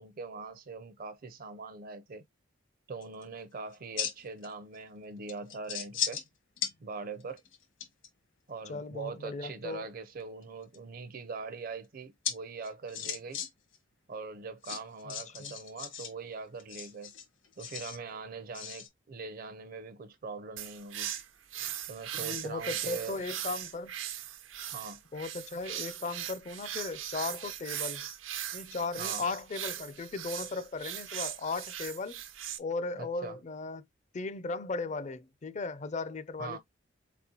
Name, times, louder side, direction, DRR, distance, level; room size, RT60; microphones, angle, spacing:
voice 1, 0.0-2.2 2.9-6.2 6.8-7.4 8.5-13.4 14.1-17.1 17.6-21.1 21.9-23.2 24.7-25.0 29.0-29.2 33.0-33.4 36.4-36.6, right 4 dB, 50° right, 0.6 m, -42 dB
sound 1, 3.0-3.2 3.7-4.5 4.7-4.8 5.3-6.3 6.6-6.7 7.2-8.1 10.2-10.8 12.2-12.3 12.6-13.5 13.7-13.8 14.6-16.1 16.6-18.0 18.5-18.9, left 8 dB, 75° left, 1.5 m, -36 dB
voice 2, 8.7-9.9 15.1-15.5 22.2-24.0 25.1-28.1 28.5-32.2 32.6-33.8 34.1-36.6, left 3 dB, 40° left, 0.5 m, -37 dB
sound 2, 20.6-32.6, right 11 dB, 85° right, 0.7 m, -39 dB
4.1 x 4.1 x 2.8 m
head